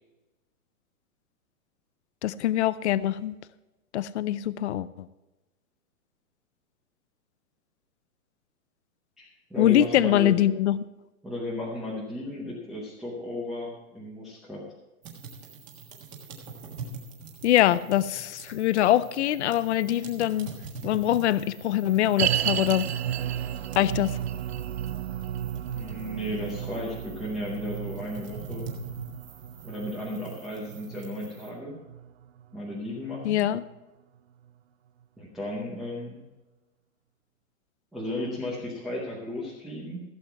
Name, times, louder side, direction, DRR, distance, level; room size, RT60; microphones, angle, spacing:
voice 1, 2.2-3.3 3.9-5.1 9.6-10.8 17.4-20.5 20.8-22.9 23.8-24.2 33.2-33.6, left 12 dB, 55° left, 17 dB, 0.5 m, -23 dB
voice 2, 9.2-10.4 11.2-14.7 25.7-28.7 29.6-31.8 32.5-33.4 35.2-36.2 37.9-40.0, left 1 dB, ahead, -7 dB, 0.7 m, -34 dB
sound 1, 15.0-31.5, right 4 dB, 15° right, 1.4 m, -44 dB
sound 2, 22.2-33.5 33.7-33.8 34.5-34.6, right 10 dB, 50° right, 0.4 m, -33 dB
16.0 x 7.7 x 4.6 m, 1.1 s
hypercardioid pair, 175°, 43 cm